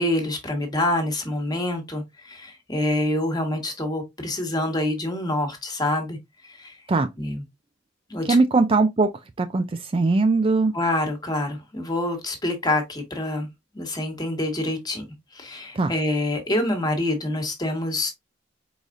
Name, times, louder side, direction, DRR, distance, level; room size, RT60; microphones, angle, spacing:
voice 1, 0.0-6.2 6.4-6.8 7.2-7.4 8.1-8.2 10.7-13.5 13.7-15.1 15.3-18.1, left 1 dB, 20° left, 1.4 m, -26 dB
voice 2, 8.2-9.1 9.4-9.6 9.9-10.7 15.8-15.9, right 3 dB, 30° right, 0.4 m, -19 dB
4.8 x 4.0 x 2.5 m
head